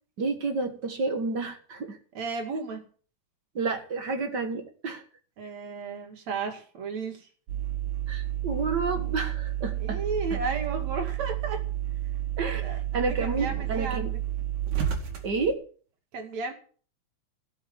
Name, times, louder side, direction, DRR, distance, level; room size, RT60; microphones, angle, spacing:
voice 1, 0.2-2.0 3.5-5.0 8.1-10.0 10.3-10.4 12.4-14.1 15.2-15.6, right 4 dB, 45° right, 7 dB, 1.7 m, -30 dB
voice 2, 2.2-2.8 5.4-7.3 9.8-11.7 12.6-12.8 13.1-14.2 16.1-16.5, right 4 dB, 65° right, 4 dB, 3.6 m, -33 dB
sound 1, 7.5-15.5, right 12 dB, 85° right, 3.7 m, -31 dB
17.0 x 7.3 x 7.3 m, 0.43 s
omnidirectional pair, 3.4 m